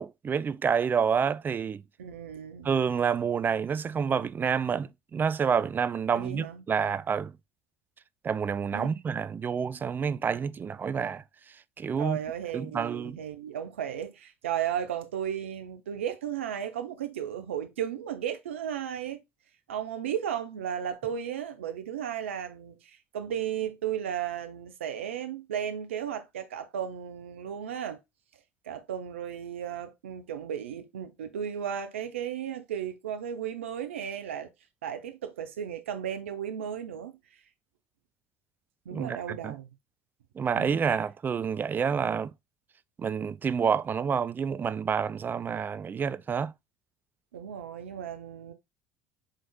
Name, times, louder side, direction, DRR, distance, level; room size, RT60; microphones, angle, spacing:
voice 1, 0.0-1.8 2.6-7.4 8.2-11.2 11.8-12.2 12.5-13.2 38.9-39.6 40.4-42.3 43.0-46.5, right 6 dB, 30° right, 0.4 m, -28 dB
voice 2, 2.0-2.7 6.1-6.6 8.7-8.9 12.0-19.2 19.7-28.0 28.6-34.5 34.8-37.2 38.9-39.7 47.3-48.5, right 9 dB, 85° right, 0.6 m, -35 dB
5.2 x 3.8 x 2.2 m
hypercardioid pair, 70°, 7 cm